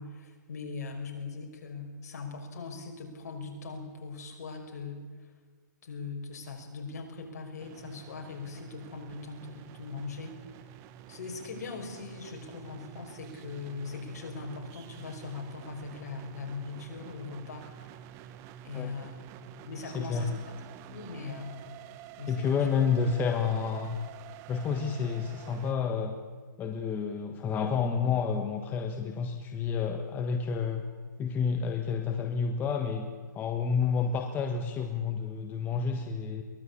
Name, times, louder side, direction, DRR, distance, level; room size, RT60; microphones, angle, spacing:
voice 1, 0.0-5.1 5.8-10.4 11.1-17.8 18.6-19.3 19.7-20.4 20.9-21.7 22.2-22.7, left 4 dB, 60° left, 3 dB, 5.5 m, -40 dB
sound 1, 7.6-25.7, right 11 dB, 30° right, 1.2 m, -48 dB
voice 2, 19.9-20.3 22.3-24.0 24.5-26.1 26.6-30.8 31.2-33.1 33.3-36.4, left 6 dB, 20° left, 5 dB, 1.4 m, -30 dB
23.0 x 18.5 x 8.6 m, 1.5 s
hypercardioid pair, 145°, 10 cm